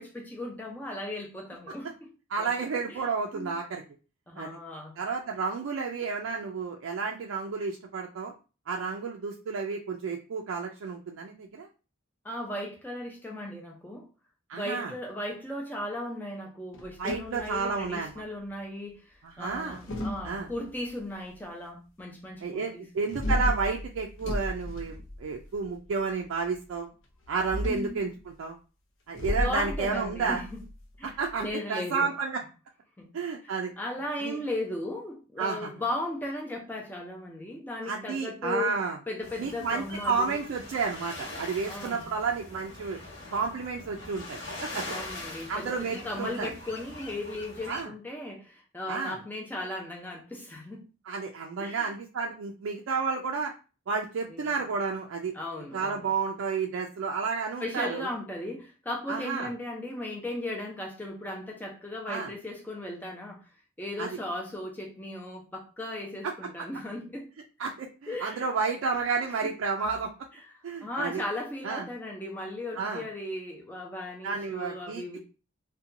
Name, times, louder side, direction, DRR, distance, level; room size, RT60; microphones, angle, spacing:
voice 1, 0.0-2.1 2.4-2.5 2.9-3.0 3.3-3.5 4.3-5.0 12.2-14.1 14.5-22.8 27.6-28.1 29.4-30.6 31.0-31.1 31.4-32.1 33.0-33.1 33.4-33.5 33.8-38.7 39.1-40.4 41.7-42.0 44.8-50.9 51.6-51.9 54.3-54.5 55.3-56.0 57.6-63.5 63.8-67.3 68.1-68.5 70.8-75.2, left 1 dB, 10° left, 0.5 m, -36 dB
voice 2, 2.3-3.8 4.4-4.6 5.0-8.3 8.7-11.7 14.5-14.9 17.0-18.1 19.2-19.8 20.2-20.5 22.4-26.9 27.3-28.6 29.1-30.4 31.0-32.4 33.1-33.7 34.2-34.4 35.4-35.7 37.8-39.0 39.4-43.0 43.3-45.0 45.5-46.5 47.7-47.9 48.9-49.2 51.0-53.5 53.9-55.3 55.7-58.1 59.1-59.5 62.1-62.3 64.0-64.2 66.2-66.3 67.6-70.1 70.6-71.2 71.6-71.9 72.8-73.0 74.2-75.0, right 4 dB, 80° right, 0.3 m, -31 dB
sound 1, 16.7-18.1 19.4-20.8 23.1-25.7 27.2-28.0 29.1-31.5, left 1 dB, 80° left, 0.5 m, -34 dB
sound 2, 39.2-47.8, left 2 dB, 55° left, 1.1 m, -42 dB
2.7 x 2.2 x 2.5 m
head